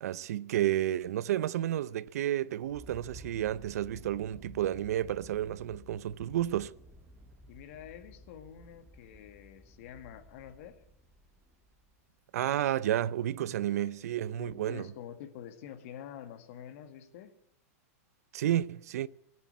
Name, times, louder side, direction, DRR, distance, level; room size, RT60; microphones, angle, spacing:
voice 1, 0.0-6.7 12.3-14.9 18.3-19.1, right 12 dB, 80° right, 0.6 m, -31 dB
sound 1, 2.6-12.2, left 1 dB, ahead, 1.6 m, -54 dB
voice 2, 7.5-10.8 13.7-17.3, left 9 dB, 60° left, 1.8 m, -47 dB
15.0 x 9.6 x 9.5 m
supercardioid pair, 140°, 8 cm